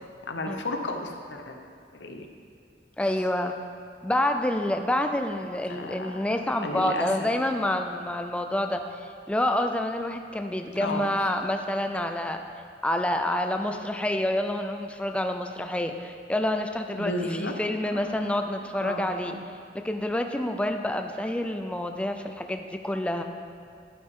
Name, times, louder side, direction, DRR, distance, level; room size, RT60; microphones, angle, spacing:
voice 1, 0.2-1.6 1.9-2.3 5.7-7.3 10.8-11.1 16.9-17.6 17.9-18.4 18.8-19.4, left 2 dB, 85° left, 4 dB, 0.9 m, -34 dB
voice 2, 3.0-3.6 4.0-12.4 12.8-19.6 19.8-23.2, left 1 dB, 5° left, 5 dB, 0.4 m, -28 dB
12.0 x 8.0 x 3.6 m, 2.2 s
head